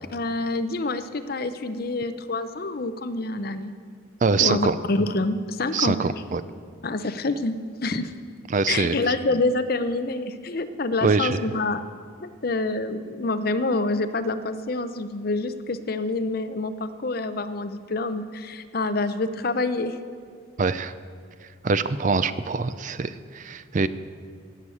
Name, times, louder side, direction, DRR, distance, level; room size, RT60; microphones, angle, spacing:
voice 1, 0.1-3.7 4.4-6.0 6.8-8.1 8.7-11.8 12.2-20.0, left 2 dB, 45° left, 11 dB, 0.6 m, -27 dB
voice 2, 4.2-4.8 5.7-6.4 8.5-9.0 11.0-11.4 20.6-20.9 21.6-23.9, right 4 dB, 40° right, 14 dB, 0.4 m, -24 dB
16.5 x 6.4 x 8.4 m, 2.1 s
head